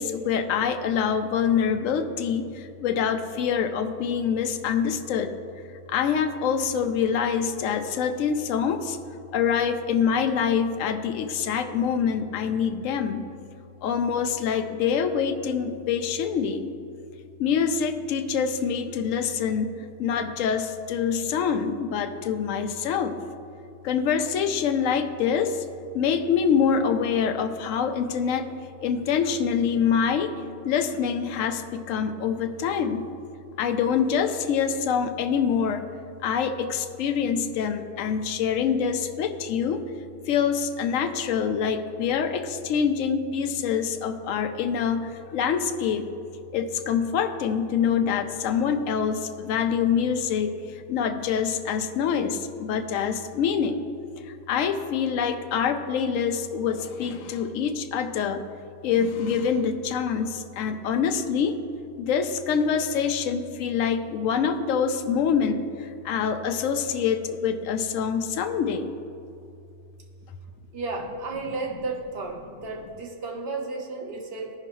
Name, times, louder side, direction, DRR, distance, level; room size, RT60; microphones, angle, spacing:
voice 1, 0.0-5.3 5.9-9.0 9.3-13.3 13.8-16.7 17.4-19.7 20.0-23.2 23.8-25.6 25.9-28.5 28.8-30.3 30.6-33.1 33.6-35.8 36.2-39.8 40.3-46.1 46.5-50.5 50.9-53.9 54.3-58.5 58.8-61.5 62.0-68.9, left 7 dB, 70° left, 8 dB, 0.9 m, -25 dB
voice 2, 70.7-74.5, right 3 dB, 45° right, 2 dB, 1.2 m, -33 dB
14.5 x 5.7 x 3.1 m, 2.5 s
omnidirectional pair, 1.5 m